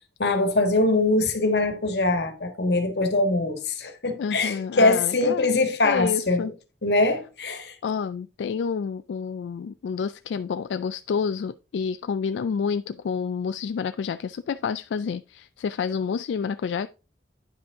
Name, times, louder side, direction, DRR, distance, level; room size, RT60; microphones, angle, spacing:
voice 1, 0.2-6.5 6.8-7.8, left 2 dB, 65° left, 1.4 m, -23 dB
voice 2, 4.2-5.5 5.8-6.5 7.8-16.9, left 6 dB, 85° left, 0.3 m, -29 dB
9.9 x 5.1 x 3.5 m
head